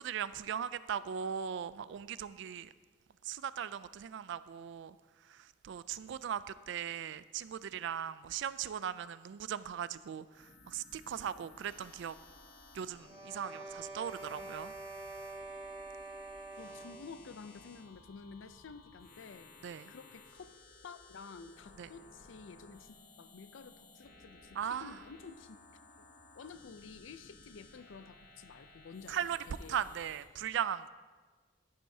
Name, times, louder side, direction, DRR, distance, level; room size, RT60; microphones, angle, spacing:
voice 1, 0.0-2.7 3.2-5.0 5.3-12.2 12.7-14.7 19.6-19.9 21.8-21.9 24.6-25.0 29.1-29.4 29.7-30.9, right 8 dB, 65° right, 16 dB, 0.3 m, -38 dB
sound 1, 10.3-30.3, left 3 dB, 50° left, 1.0 m, -58 dB
sound 2, 13.0-17.1, right 2 dB, 30° right, 3.4 m, -46 dB
voice 2, 16.6-19.5 19.9-20.6 20.8-26.1 26.4-29.8, left 5 dB, 75° left, 12 dB, 0.5 m, -51 dB
11.5 x 10.0 x 2.7 m, 1.4 s
head